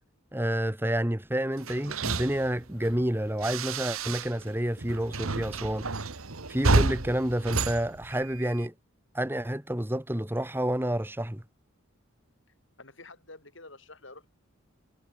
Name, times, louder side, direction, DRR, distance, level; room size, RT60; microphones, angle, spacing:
voice 1, 0.3-5.9 6.5-8.7 9.1-11.4, right 1 dB, 10° right, 1.4 m, -29 dB
sound 1, 1.6-4.5 4.8-8.7, right 3 dB, 85° right, 1.6 m, -30 dB
voice 2, 12.8-14.3, left 2 dB, 60° left, 7.5 m, -48 dB
head